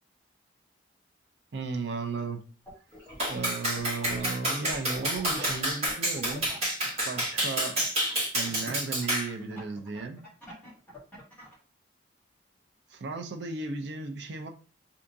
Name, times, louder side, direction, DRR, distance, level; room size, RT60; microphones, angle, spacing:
voice 1, 1.5-2.4 3.3-6.5 7.1-7.8 8.3-10.2 12.9-14.5, right 4 dB, 60° right, 5 dB, 0.5 m, -35 dB
sound 1, 2.7-3.5 3.7-8.2 8.9-11.6, left 1 dB, 10° left, 1.2 m, -45 dB
Clapping, 3.2-9.3, right 1 dB, 35° right, 1.3 m, -29 dB
3.5 x 2.8 x 2.6 m, 0.36 s
head